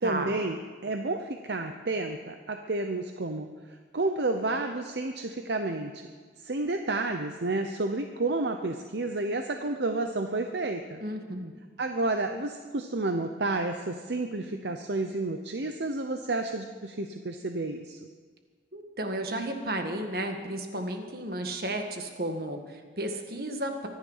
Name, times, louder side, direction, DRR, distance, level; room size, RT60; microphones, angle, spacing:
voice 1, 0.0-6.0 6.4-11.0 11.8-18.0, right 2 dB, 70° right, 6 dB, 0.8 m, -31 dB
voice 2, 11.0-11.5 18.7-23.9, right 1 dB, 55° right, 5 dB, 1.8 m, -33 dB
24.0 x 10.5 x 5.6 m, 1.5 s
head